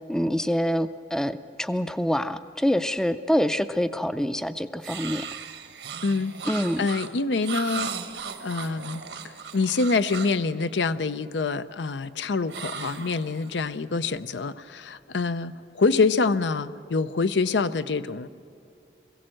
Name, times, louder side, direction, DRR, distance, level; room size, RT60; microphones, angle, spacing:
voice 1, 0.1-5.3 6.5-6.9, equal, 5° left, 12 dB, 0.4 m, -26 dB
sound 1, 4.8-10.4 12.5-13.7, right 6 dB, 85° right, 1.3 m, -37 dB
voice 2, 6.0-7.9 8.4-9.0 9.5-18.3, left 4 dB, 90° left, 13 dB, 0.6 m, -26 dB
21.5 x 16.0 x 7.6 m, 2.6 s
head